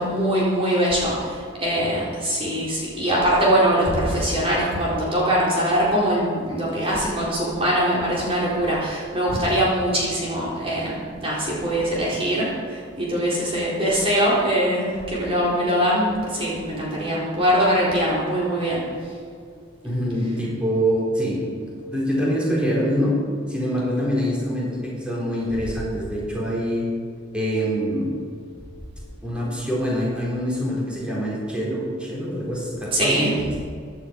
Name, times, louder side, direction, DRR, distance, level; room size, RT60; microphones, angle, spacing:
voice 1, 0.0-18.9 32.9-33.4, equal, 30° right, -6 dB, 4.0 m, -22 dB
voice 2, 19.8-23.1 23.5-26.9 27.3-28.1 29.2-33.6, equal, 5° right, -6 dB, 4.0 m, -25 dB
16.0 x 11.5 x 5.2 m, 2.1 s
head